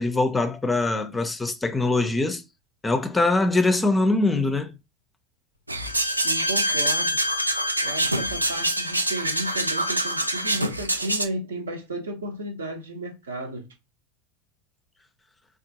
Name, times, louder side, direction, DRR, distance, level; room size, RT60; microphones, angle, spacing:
voice 1, 0.0-2.4 2.8-4.7, left 2 dB, 10° left, 0.4 m, -23 dB
sound 1, 5.7-11.2, right 2 dB, 90° right, 0.3 m, -26 dB
Bowed string instrument, 5.8-10.7, left 1 dB, 80° left, 0.3 m, -30 dB
voice 2, 6.2-7.2 7.8-13.6, right 1 dB, 70° right, 0.7 m, -33 dB
3.5 x 2.3 x 2.7 m
figure-of-eight pair, 80°, 0 cm